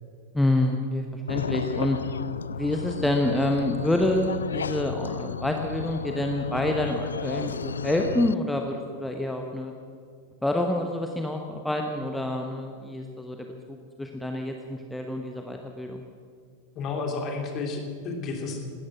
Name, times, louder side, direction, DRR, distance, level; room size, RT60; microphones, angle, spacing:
voice 1, 0.3-2.0 2.5-9.7 10.4-16.0, left 1 dB, 5° left, 3 dB, 1.0 m, -27 dB
sound 1, 1.3-8.3, left 6 dB, 70° left, 0.3 m, -33 dB
voice 2, 16.7-18.6, left 4 dB, 35° left, 3 dB, 2.7 m, -31 dB
17.5 x 13.0 x 6.1 m, 2.2 s
figure-of-eight pair, 90°, 0 cm